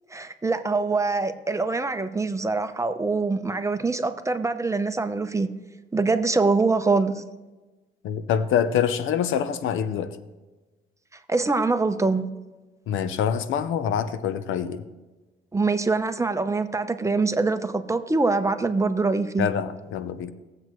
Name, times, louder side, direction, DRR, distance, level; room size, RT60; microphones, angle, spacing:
voice 1, 0.1-5.5 5.9-7.2 11.3-12.3 15.5-19.5, right 3 dB, 15° right, 9 dB, 0.8 m, -24 dB
voice 2, 8.0-10.2 12.9-14.8 19.4-20.3, left 8 dB, 85° left, 12 dB, 0.7 m, -25 dB
19.0 x 7.7 x 3.1 m, 1.2 s
cardioid pair, 90°, 20 cm